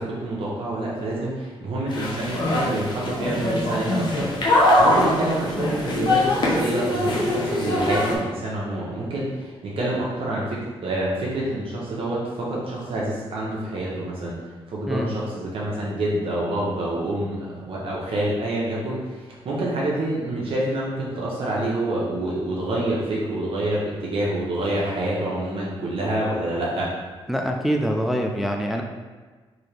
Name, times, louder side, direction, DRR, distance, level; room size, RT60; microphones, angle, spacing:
voice 1, 0.0-14.4 14.7-26.9, right 1 dB, 65° right, -5 dB, 0.9 m, -27 dB
sound 1, 1.9-8.2, left 1 dB, 50° left, 0.9 m, -22 dB
voice 2, 27.3-28.8, equal, ahead, 2 dB, 0.3 m, -24 dB
3.9 x 2.8 x 3.2 m, 1.4 s
cardioid pair, 110°, 10 cm